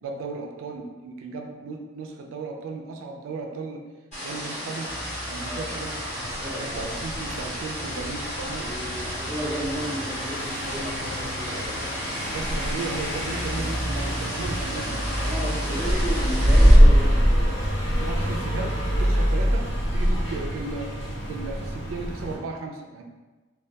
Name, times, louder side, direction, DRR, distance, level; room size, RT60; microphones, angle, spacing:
voice 1, 0.0-3.8 4.2-4.9 5.2-5.9 6.5-8.7 12.1-15.0 15.5-15.8 17.8-19.6 19.9-20.9 21.3-23.0, right 3 dB, 80° right, 2 dB, 0.3 m, -35 dB
sound 1, 4.1-16.7, equal, 35° left, 0.9 m, -34 dB
Car passing by, 4.9-22.4, equal, 60° left, 1.0 m, -24 dB
voice 2, 5.4-7.0 8.5-12.0 15.2-17.7, equal, ahead, -8 dB, 0.5 m, -34 dB
2.2 x 2.1 x 2.7 m, 1.2 s
head